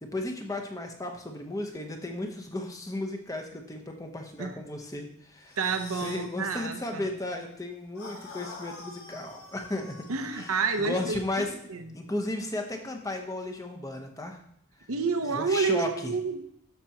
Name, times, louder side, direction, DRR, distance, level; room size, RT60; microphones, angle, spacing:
voice 1, 0.0-5.6 6.0-11.5 11.9-14.4 15.2-16.1, left 1 dB, 15° left, 3 dB, 0.9 m, -34 dB
sound 1, 5.5-6.3 7.9-11.1, left 3 dB, 85° left, 2.1 m, -46 dB
voice 2, 5.6-7.1 10.1-12.0 14.9-16.4, right 4 dB, 90° right, 6 dB, 0.9 m, -29 dB
12.5 x 6.1 x 2.9 m, 0.70 s
head